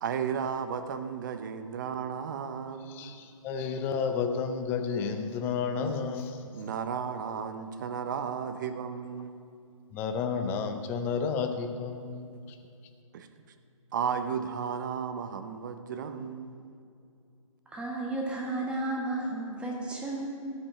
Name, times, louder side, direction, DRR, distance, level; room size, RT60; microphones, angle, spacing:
voice 1, 0.0-3.2 6.5-9.3 13.1-13.3 13.9-16.8, right 7 dB, 35° right, 9 dB, 0.7 m, -34 dB
voice 2, 2.9-6.5 9.9-12.4, left 5 dB, 10° left, 7 dB, 0.5 m, -31 dB
voice 3, 17.7-20.3, right 2 dB, 5° right, -2 dB, 1.2 m, -33 dB
13.0 x 6.2 x 8.5 m, 2.5 s
hypercardioid pair, 150°, 18 cm